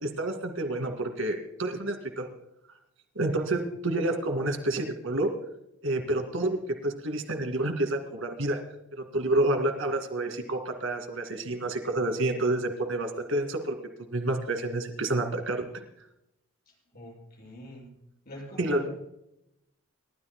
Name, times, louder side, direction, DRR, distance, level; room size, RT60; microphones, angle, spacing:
voice 1, 0.0-2.3 3.2-5.3 5.8-8.6 9.1-13.8 14.1-15.6 18.6-18.9, right 2 dB, 75° right, 5 dB, 2.4 m, -29 dB
voice 2, 16.9-18.0 18.3-18.9, left 1 dB, 45° left, -3 dB, 7.0 m, -43 dB
29.5 x 13.5 x 2.2 m, 0.84 s
head